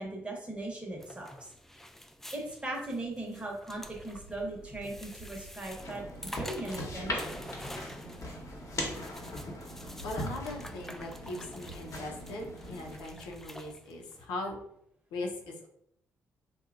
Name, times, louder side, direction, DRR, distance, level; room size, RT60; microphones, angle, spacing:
voice 1, 0.0-1.5 2.3-6.0 6.4-7.4, right 2 dB, 15° right, -2 dB, 1.0 m, -38 dB
sound 1, 1.0-14.3, equal, 5° left, 0.3 m, -48 dB
sound 2, 3.8-13.6, right 2 dB, 65° right, 0.8 m, -53 dB
sound 3, 5.8-13.0, left 1 dB, 45° left, 1.0 m, -40 dB
voice 2, 10.0-14.6 15.1-15.3, left 2 dB, 80° left, 1 dB, 0.6 m, -39 dB
2.7 x 2.3 x 2.4 m, 0.72 s
hypercardioid pair, 45°, 7 cm